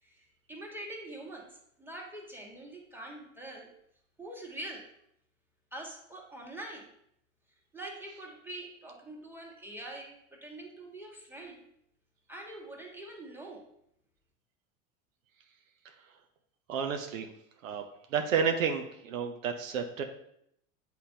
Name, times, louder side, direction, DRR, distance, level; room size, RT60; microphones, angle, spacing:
voice 1, 0.0-3.7 4.2-4.9 5.7-6.9 7.7-11.7 12.3-13.7, right 1 dB, 5° right, -1 dB, 1.5 m, -44 dB
voice 2, 16.7-17.3 17.6-17.8 18.1-20.0, right 6 dB, 80° right, 5 dB, 0.7 m, -30 dB
8.3 x 4.3 x 2.7 m, 0.73 s
hypercardioid pair, 80°, 39 cm